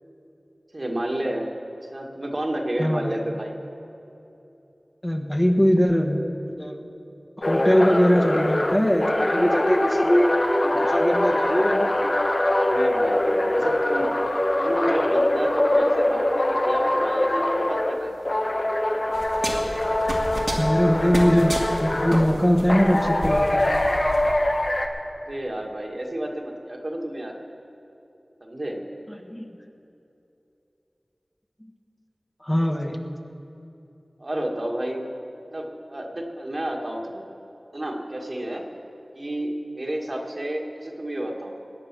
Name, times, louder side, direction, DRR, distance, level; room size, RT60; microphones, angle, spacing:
voice 1, 0.7-1.5 1.9-3.6 12.6-14.1 14.6-18.2 25.2-27.3 28.4-28.8 34.2-35.1 35.5-37.2 37.7-38.6 39.1-41.5, right 1 dB, 55° right, 0 dB, 1.8 m, -30 dB
voice 2, 2.8-3.2 5.0-6.2 6.6-6.8 7.4-10.4 10.7-12.0 20.6-23.7 29.3-29.4 32.4-33.0, equal, 20° left, 3 dB, 1.3 m, -21 dB
sound 1, 7.4-18.0 18.3-22.3 22.7-24.9, left 1 dB, 50° left, 1.2 m, -23 dB
sound 2, 19.1-24.3, right 1 dB, 80° right, 2.2 m, -32 dB
20.5 x 8.7 x 6.0 m, 2.9 s
wide cardioid pair, 40°, 0 cm